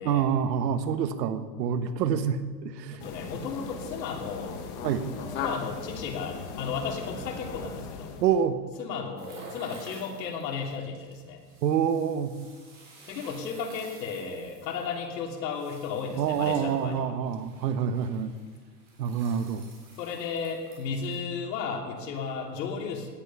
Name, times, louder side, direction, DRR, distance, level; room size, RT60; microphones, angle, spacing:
voice 1, 0.0-3.0 4.8-5.1 8.2-8.6 11.6-12.3 16.2-18.3 19.0-19.6, right 8 dB, 75° right, 10 dB, 1.3 m, -27 dB
voice 2, 2.9-4.6 5.3-8.2 8.8-11.4 13.1-17.1 20.0-23.1, left 5 dB, 80° left, 1 dB, 3.1 m, -34 dB
sound 1, 3.0-8.4, left 5 dB, 20° left, 0.9 m, -38 dB
sound 2, 9.2-21.2, right 3 dB, 20° right, 4.2 m, -53 dB
sound 3, 9.4-10.0, right 3 dB, 45° right, 4.5 m, -45 dB
17.5 x 10.0 x 5.7 m, 1.5 s
supercardioid pair, 180°, 49 cm